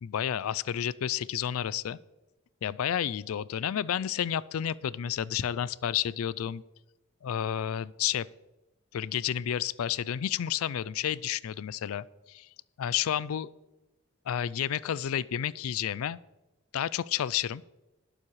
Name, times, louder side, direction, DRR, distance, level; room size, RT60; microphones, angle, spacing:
voice 1, 0.0-2.0 2.6-6.6 7.2-8.3 8.9-12.5 12.8-13.5 14.3-16.2 16.7-17.6, left 9 dB, 85° left, 20 dB, 0.4 m, -31 dB
20.5 x 7.2 x 3.2 m, 1.0 s
head